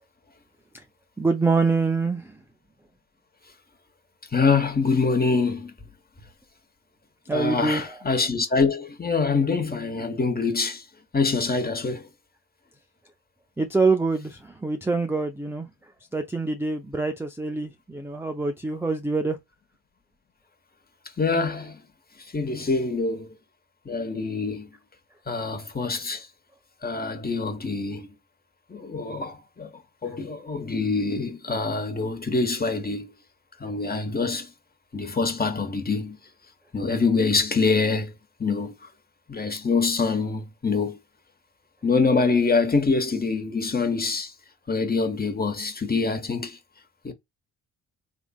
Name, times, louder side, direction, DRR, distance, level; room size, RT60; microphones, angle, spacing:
voice 1, 1.2-2.4 7.3-8.0 13.6-15.7 16.1-19.4, right 3 dB, 5° right, 0.5 m, -25 dB
voice 2, 4.3-5.7 7.3-10.8 11.1-12.1 21.2-21.8 22.3-23.3 23.8-24.7 25.3-26.3 26.8-28.1 28.7-29.7 30.0-33.1 33.6-34.5 34.9-36.2 36.7-38.1 38.4-38.7 39.3-41.0 41.8-44.3 44.7-46.6 47.0-47.1, left 4 dB, 20° left, 1.1 m, -25 dB
3.6 x 2.5 x 2.3 m
hypercardioid pair, 40°, 44 cm